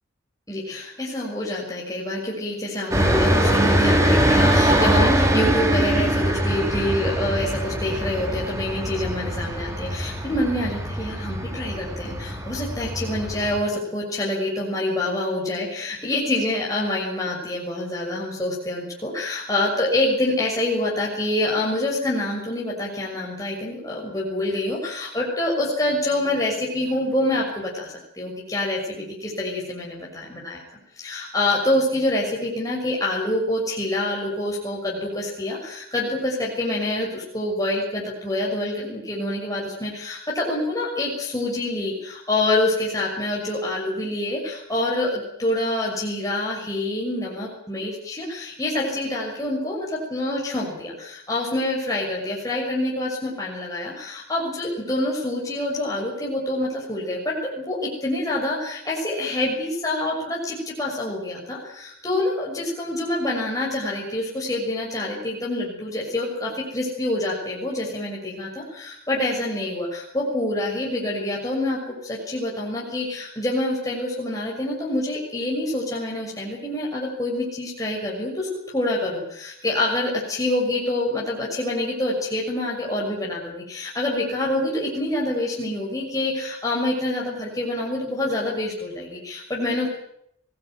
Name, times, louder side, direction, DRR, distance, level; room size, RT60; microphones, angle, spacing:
voice 1, 0.5-30.6 31.0-78.5 78.7-89.9, left 1 dB, 15° left, -3 dB, 6.4 m, -26 dB
sound 1, 2.9-13.6, right 1 dB, 15° right, 4.0 m, -22 dB
24.0 x 18.5 x 9.3 m, 0.73 s
head